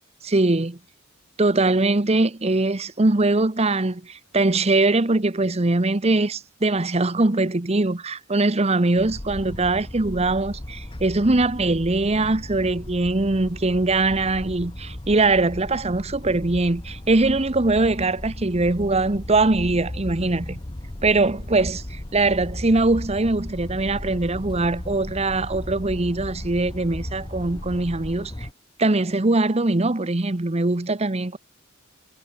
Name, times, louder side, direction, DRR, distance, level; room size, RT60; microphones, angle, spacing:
voice 1, 0.2-0.8 1.4-20.6 21.0-28.5 28.8-31.4, right 2 dB, 30° right, 1.0 m, -22 dB
sound 1, 9.0-28.5, left 1 dB, 25° left, 1.1 m, -36 dB
head